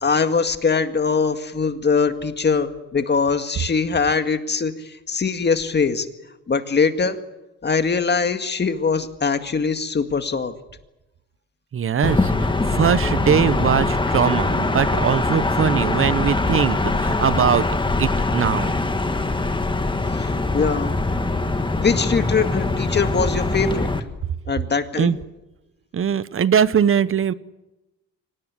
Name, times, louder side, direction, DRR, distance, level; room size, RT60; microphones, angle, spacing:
voice 1, 0.0-6.1 6.5-7.2 7.6-10.5 20.1-20.9 21.8-23.9 24.5-25.1, left 5 dB, 35° left, 8 dB, 2.0 m, -22 dB
voice 2, 11.7-17.6 18.0-18.7 25.0-25.2 25.9-27.3, right 8 dB, 45° right, 17 dB, 1.0 m, -21 dB
sound 1, 12.0-24.0, left 2 dB, 15° left, 1.9 m, -22 dB
24.5 x 18.5 x 9.6 m, 1.0 s
cardioid pair, 90°, 30 cm